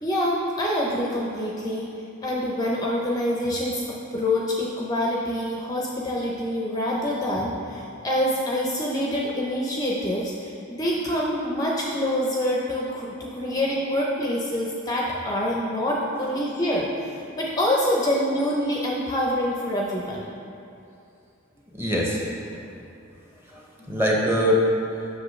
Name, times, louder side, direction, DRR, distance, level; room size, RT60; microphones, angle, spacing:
voice 1, 0.0-1.9 2.2-16.9 17.4-20.2 23.8-23.9, left 1 dB, 20° left, -3 dB, 0.5 m, -26 dB
voice 2, 21.7-22.6 23.5-23.6 23.9-25.1, equal, 10° right, -3 dB, 0.9 m, -23 dB
7.7 x 6.1 x 3.2 m, 2.6 s
head